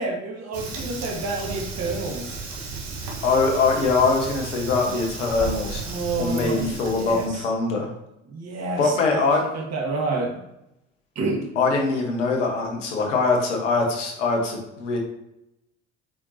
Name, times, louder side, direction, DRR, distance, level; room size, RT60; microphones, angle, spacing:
voice 1, 0.0-2.4 5.8-7.4 8.3-9.2 9.5-10.4 11.1-11.5, right 3 dB, 45° right, 1 dB, 1.7 m, -29 dB
Fire, 0.5-7.3, right 3 dB, 65° right, 1.6 m, -34 dB
voice 2, 3.2-5.8 6.2-7.9 8.8-9.4 11.5-15.0, left 3 dB, 80° left, 1 dB, 1.6 m, -22 dB
8.3 x 4.4 x 2.9 m, 0.86 s
hypercardioid pair, 70°, 36 cm